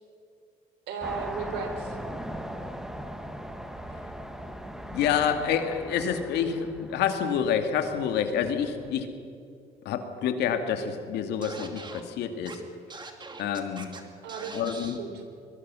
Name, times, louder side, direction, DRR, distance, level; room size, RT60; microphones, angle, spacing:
voice 1, 0.9-2.0 14.2-15.2, right 5 dB, 85° right, 6 dB, 3.8 m, -35 dB
sound 1, 1.0-8.9, equal, 5° right, 1.6 m, -40 dB
voice 2, 4.9-9.1 9.8-12.6 13.4-13.9 14.5-15.0, left 8 dB, 80° left, 6 dB, 2.3 m, -28 dB
Scratching (performance technique), 11.4-12.0 12.5-12.6 12.9-14.0 14.3-15.0, right 3 dB, 25° right, 2.5 m, -42 dB
23.0 x 21.5 x 6.3 m, 2.5 s
cardioid pair, 110°, 17 cm